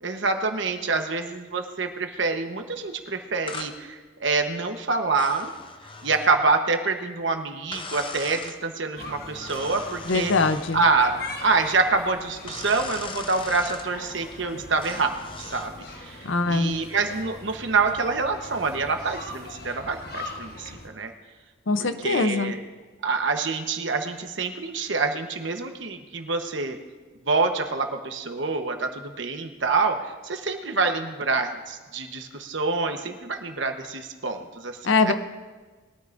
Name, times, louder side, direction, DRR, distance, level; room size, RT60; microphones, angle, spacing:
voice 1, 0.0-5.5 6.0-10.3 10.7-11.2 11.4-15.1 15.4-15.7 16.0-21.1 21.8-22.6 23.0-26.8 27.3-34.8 35.0-35.1, right 4 dB, 65° right, 5 dB, 1.1 m, -26 dB
sound 1, 3.5-3.8 5.2-6.4 7.7-8.6 9.5-10.8 12.5-13.9 14.8-15.7, left 4 dB, 25° left, 0.7 m, -39 dB
sound 2, 9.0-20.9, left 2 dB, 50° left, 1.4 m, -41 dB
voice 2, 10.1-10.8 16.2-16.8 21.7-22.5 34.8-35.1, left 3 dB, 70° left, 10 dB, 0.7 m, -22 dB
21.5 x 13.0 x 2.6 m, 1.4 s
head